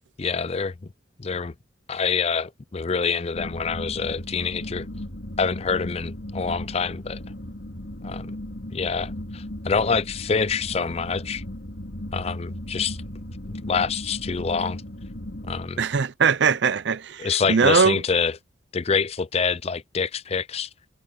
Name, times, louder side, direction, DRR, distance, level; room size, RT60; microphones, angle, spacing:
voice 1, 0.2-0.9 1.2-1.5 1.9-4.9 5.4-7.2 8.0-8.3 8.7-11.4 12.1-13.0 13.5-14.8 15.5-15.8 17.2-18.4 18.7-20.7, left 5 dB, 30° left, 0.5 m, -26 dB
sound 1, 3.3-15.7, left 1 dB, 65° left, 3.4 m, -36 dB
voice 2, 15.8-18.0, right 5 dB, 60° right, 0.5 m, -21 dB
head